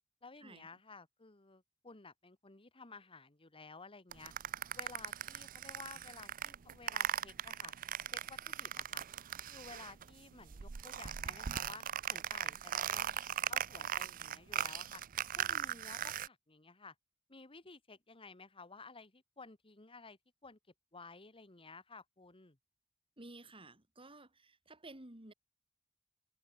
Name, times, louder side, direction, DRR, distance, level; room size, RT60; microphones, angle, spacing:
voice 1, 0.2-4.3 4.8-7.7 8.1-9.0 9.5-13.1 13.4-15.0 15.3-16.9 17.3-20.6 20.9-22.6, left 4 dB, 25° left, 1.7 m, -54 dB
sound 1, 4.1-10.1 10.4-16.3, right 9 dB, 40° right, 0.5 m, -39 dB
voice 2, 23.2-25.3, right 2 dB, 25° right, 2.9 m, -53 dB
head